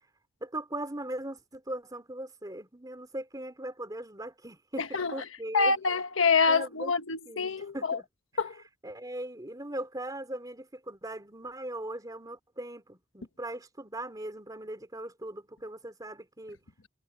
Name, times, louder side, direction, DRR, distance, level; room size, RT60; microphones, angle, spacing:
voice 1, 0.4-5.8 6.5-6.9 7.2-8.0 8.8-16.6, right 1 dB, 20° right, 3.0 m, -39 dB
voice 2, 4.8-5.1 5.5-8.0 8.4-8.6, left 4 dB, 65° left, 1.3 m, -26 dB
head